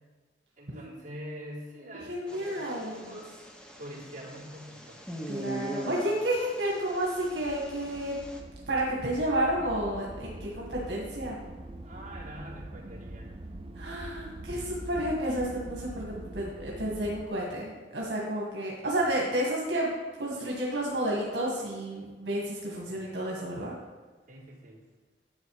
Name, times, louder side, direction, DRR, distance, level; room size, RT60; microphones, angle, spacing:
voice 1, 0.6-3.4 3.8-5.0 11.8-13.4 22.9-23.1 24.3-24.8, equal, 45° right, -8 dB, 3.9 m, -44 dB
voice 2, 2.1-3.1 5.3-8.2 8.7-11.4 13.8-19.9 20.2-23.7, right 1 dB, 85° right, -3 dB, 2.0 m, -31 dB
sound 1, 2.3-8.4, right 1 dB, 5° left, 1.1 m, -42 dB
sound 2, 6.8-17.3, right 1 dB, 30° right, 0.6 m, -43 dB
11.0 x 7.1 x 5.0 m, 1.4 s
head